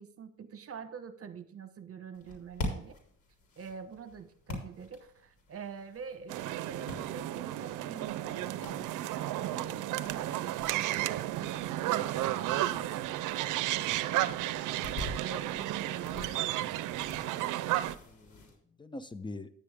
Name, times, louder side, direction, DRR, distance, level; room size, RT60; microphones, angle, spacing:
voice 1, 0.0-3.0 3.6-12.9 13.8-14.6 15.2-16.8, right 6 dB, 50° right, 11 dB, 1.2 m, -46 dB
sound 1, 2.1-18.5, left 2 dB, 75° left, 3.8 m, -46 dB
sound 2, 6.3-17.9, right 14 dB, 90° right, 0.6 m, -33 dB
voice 2, 17.1-17.5 18.0-19.5, left 2 dB, 15° left, 13 dB, 0.8 m, -45 dB
10.5 x 8.5 x 3.5 m, 0.66 s
cardioid pair, 90°, 30 cm